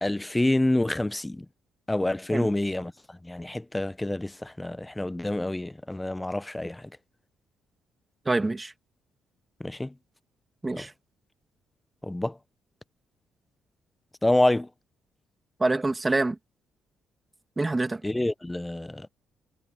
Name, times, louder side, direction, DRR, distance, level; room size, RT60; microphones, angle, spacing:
voice 1, 0.0-1.5 1.9-6.9 9.6-9.9 10.7-10.9 12.0-12.4 14.2-14.7 18.0-19.1, left 1 dB, 10° left, 0.5 m, -27 dB
voice 2, 8.3-8.7 10.6-10.9 15.6-16.4 17.6-18.0, right 2 dB, 20° right, 2.1 m, -26 dB
cardioid pair, 90°, 0 cm